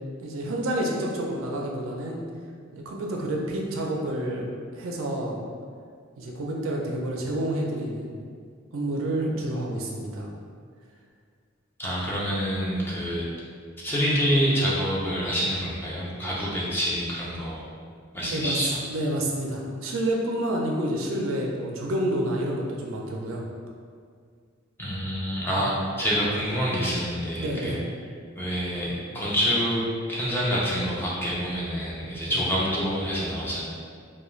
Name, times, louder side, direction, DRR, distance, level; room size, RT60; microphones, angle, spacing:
voice 1, 0.2-2.2 2.7-5.4 6.2-8.3 8.7-10.3 18.2-23.5 25.5-25.6 27.4-27.8 32.2-32.4, right 1 dB, 70° right, -1 dB, 0.4 m, -29 dB
voice 2, 11.8-13.3 13.8-17.6 18.1-18.8 24.8-27.8 28.4-33.6, equal, 10° left, -7 dB, 0.5 m, -27 dB
2.3 x 2.2 x 3.0 m, 2.1 s
head